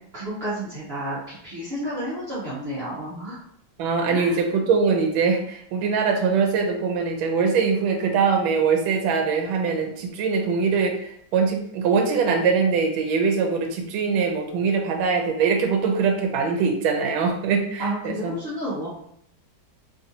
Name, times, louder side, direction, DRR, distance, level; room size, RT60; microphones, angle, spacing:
voice 1, 0.1-3.4 4.1-4.4 17.8-18.9, right 1 dB, 55° right, -9 dB, 0.7 m, -31 dB
voice 2, 3.8-18.4, right 5 dB, 80° right, 3 dB, 1.3 m, -22 dB
3.5 x 2.5 x 2.7 m, 0.70 s
omnidirectional pair, 2.2 m